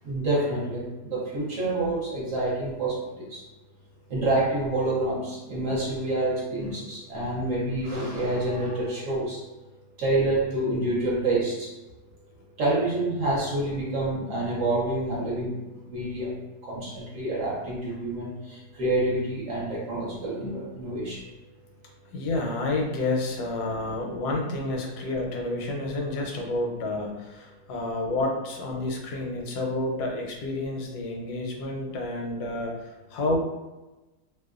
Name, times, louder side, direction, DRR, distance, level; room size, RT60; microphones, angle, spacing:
voice 1, 0.0-3.4 4.1-9.4 10.0-11.7 12.6-15.6 15.9-21.2, right 2 dB, 60° right, -5 dB, 0.9 m, -27 dB
voice 2, 22.1-33.4, left 2 dB, 80° left, 1 dB, 1.1 m, -29 dB
2.7 x 2.1 x 2.3 m, 1.1 s
omnidirectional pair, 1.7 m